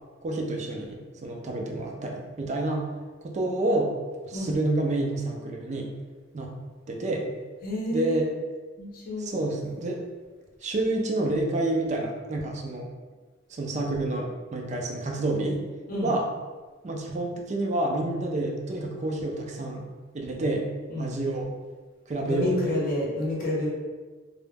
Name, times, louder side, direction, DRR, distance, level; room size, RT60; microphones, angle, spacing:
voice 1, 0.2-2.9 3.2-3.9 4.2-5.9 6.3-6.5 6.9-7.3 7.9-8.3 9.2-10.0 10.6-12.9 13.5-15.6 16.0-16.3 16.8-20.7 21.0-21.5 22.1-22.6, right 2 dB, 40° right, 1 dB, 0.4 m, -28 dB
voice 2, 4.3-4.6 7.6-8.2 8.8-9.4 15.9-16.2 20.9-21.1 22.2-23.7, left 1 dB, 50° left, -4 dB, 0.7 m, -29 dB
2.2 x 2.0 x 3.2 m, 1.4 s
head